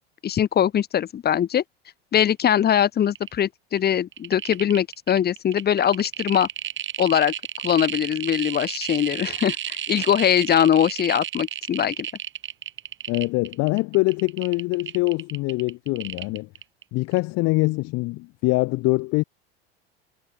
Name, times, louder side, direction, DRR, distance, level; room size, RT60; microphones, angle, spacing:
voice 1, 0.2-1.6 2.1-6.5 7.0-7.3 7.6-12.1, left 9 dB, 30° left, 1.6 m, -21 dB
sound 1, 2.8-2.9 3.0-3.4 3.8-16.8 17.1-17.2, right 11 dB, 35° right, 3.4 m, -32 dB
voice 2, 13.1-16.5 16.9-19.2, left 23 dB, 50° left, 1.6 m, -24 dB
hypercardioid pair, 90°, 31 cm